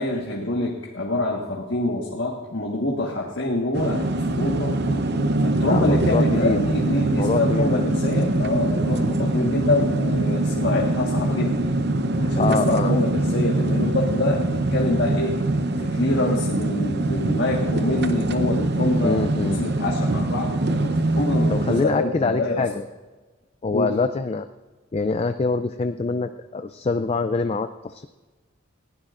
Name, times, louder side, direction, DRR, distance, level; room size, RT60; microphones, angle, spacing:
voice 1, 0.0-4.1 4.3-4.8 5.4-11.6 12.2-15.4 15.8-22.6 23.7-24.0, left 2 dB, 60° left, -2 dB, 1.6 m, -25 dB
sound 1, 3.7-21.9, right 2 dB, 55° right, 0.8 m, -23 dB
voice 2, 5.6-6.6 7.1-7.8 12.4-12.9 19.0-19.6 21.5-22.9 23.6-24.5 24.9-28.1, left 3 dB, 30° left, 9 dB, 0.4 m, -25 dB
20.5 x 15.5 x 2.5 m, 1.2 s
head